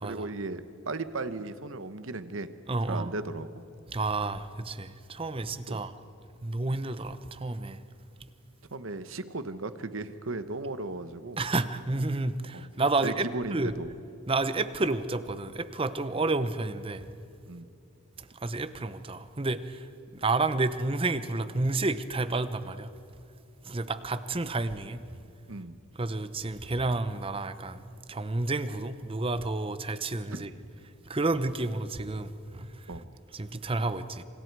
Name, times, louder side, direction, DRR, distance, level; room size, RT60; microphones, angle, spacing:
voice 1, 0.0-2.5 2.9-3.5 5.7-5.8 8.7-11.4 12.5-12.7 13.0-13.9 16.1-16.3 17.5-17.7 25.5-25.8 30.3-30.4 32.9-33.1, right 2 dB, 75° right, 12 dB, 1.1 m, -36 dB
voice 2, 2.7-3.1 3.9-5.9 6.4-7.8 11.4-13.7 14.3-17.0 18.2-19.9 20.1-22.9 23.6-25.0 26.0-30.5 31.1-32.7 33.3-34.2, right 2 dB, 25° right, 12 dB, 0.9 m, -30 dB
27.5 x 26.5 x 4.8 m, 2.7 s
head